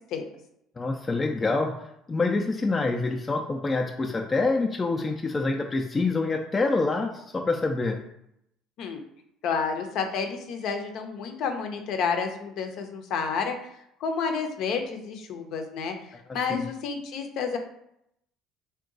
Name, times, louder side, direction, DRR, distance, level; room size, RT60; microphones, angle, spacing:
voice 1, 0.8-1.7 2.1-8.0 16.5-16.7, left 3 dB, 25° left, 2 dB, 0.4 m, -26 dB
voice 2, 9.4-13.6 14.0-17.6, left 5 dB, 65° left, 5 dB, 0.6 m, -30 dB
3.7 x 2.3 x 3.8 m, 0.78 s
supercardioid pair, 85°, 0 cm